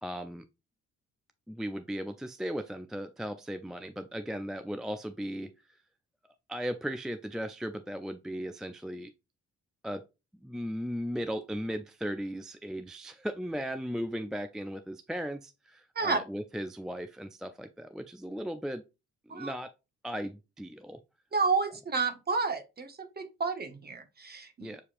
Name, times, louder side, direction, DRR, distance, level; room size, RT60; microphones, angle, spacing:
voice 1, 0.0-0.4 1.5-5.5 6.5-9.1 9.8-10.0 10.4-18.8 19.3-19.7 20.0-21.0 24.6-24.8, equal, ahead, 0.3 m, -37 dB
voice 2, 21.3-24.7, right 4 dB, 30° right, 1.0 m, -30 dB
6.6 x 2.8 x 2.5 m
supercardioid pair, 60°, 33 cm